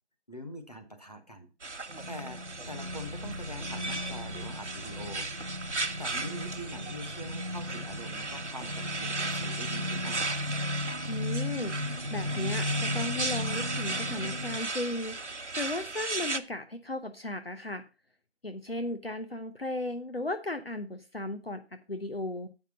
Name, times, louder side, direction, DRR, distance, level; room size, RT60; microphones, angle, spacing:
voice 1, 0.3-1.5 2.1-5.3 5.9-10.4 19.1-19.2, equal, 35° left, 5 dB, 1.1 m, -43 dB
sound 1, 1.6-16.4, right 3 dB, 80° right, 1.1 m, -36 dB
sound 2, 1.9-14.6, left 2 dB, 45° right, 0.4 m, -36 dB
voice 2, 11.1-11.7 12.1-15.2 15.6-17.8 18.4-21.6 21.9-22.5, left 1 dB, 55° left, 7 dB, 0.9 m, -35 dB
8.5 x 5.8 x 5.6 m, 0.31 s
figure-of-eight pair, 180°, 35 cm